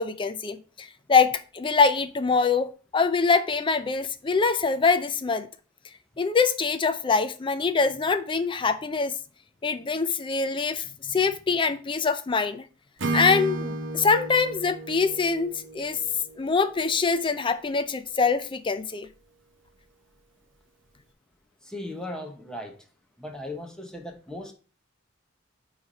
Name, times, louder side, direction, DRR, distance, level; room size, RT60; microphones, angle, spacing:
voice 1, 0.0-5.5 6.2-9.1 9.6-12.6 13.1-16.0 16.4-19.1, left 4 dB, 25° left, 0.4 m, -24 dB
Acoustic guitar / Strum, 13.0-17.0, right 2 dB, 65° right, 1.0 m, -33 dB
voice 2, 21.7-22.7 23.2-24.5, left 1 dB, 5° left, 1.0 m, -37 dB
9.4 x 3.2 x 4.0 m
head